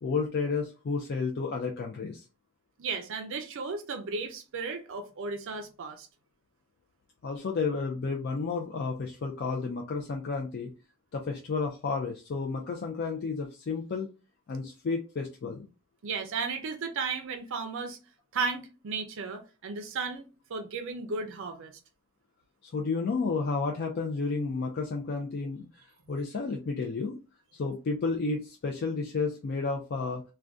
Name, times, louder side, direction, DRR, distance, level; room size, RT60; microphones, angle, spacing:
voice 1, 0.0-2.2 7.2-10.7 11.1-14.1 14.5-15.7 22.6-25.7 26.1-27.2 27.5-30.2, left 4 dB, 50° left, 0.4 m, -31 dB
voice 2, 2.8-6.1 16.0-18.0 18.3-21.8, right 4 dB, 60° right, 0.5 m, -34 dB
2.5 x 2.2 x 3.4 m
head